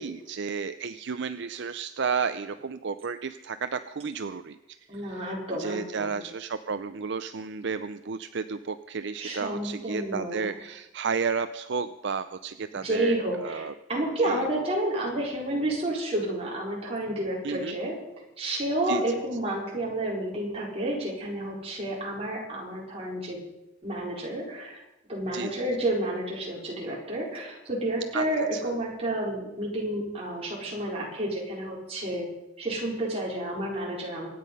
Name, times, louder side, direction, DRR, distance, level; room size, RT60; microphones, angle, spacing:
voice 1, 0.0-13.7 14.2-14.5 17.4-17.8 18.9-19.0 25.3-25.6 28.1-28.2 28.5-28.6, right 5 dB, 60° right, 11 dB, 0.5 m, -32 dB
voice 2, 4.9-6.1 9.2-10.5 12.8-18.0 18.4-23.4 23.8-24.8 25.1-32.3 32.6-34.3, right 1 dB, 30° right, -3 dB, 4.5 m, -30 dB
24.0 x 9.4 x 5.4 m, 0.96 s
head